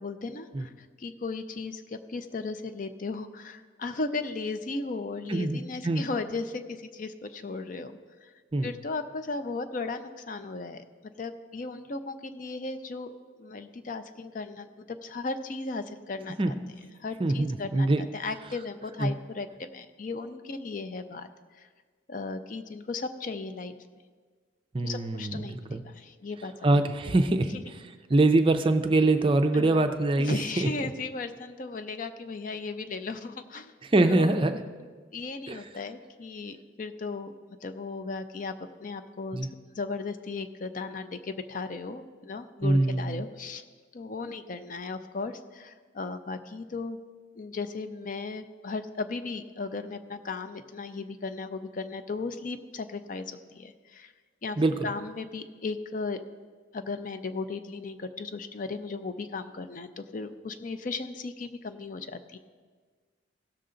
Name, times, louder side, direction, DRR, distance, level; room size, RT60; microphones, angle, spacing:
voice 1, 0.0-8.3 8.6-10.8 11.2-13.1 13.4-16.5 17.0-21.3 21.6-21.7 22.1-23.7 24.8-26.8 29.5-29.8 30.2-33.7 34.1-34.4 35.1-43.6 43.9-47.0 47.4-54.1 54.4-56.2 56.7-62.4, left 3 dB, 40° left, 9 dB, 0.5 m, -36 dB
voice 2, 17.2-18.0 19.0-19.1 24.7-25.8 26.6-27.5 28.1-30.7 33.9-34.6 35.5-35.6 39.3-39.5 42.6-43.2 54.6-54.7, right 2 dB, 25° right, 7 dB, 0.4 m, -24 dB
16.5 x 6.7 x 3.8 m, 1.5 s
head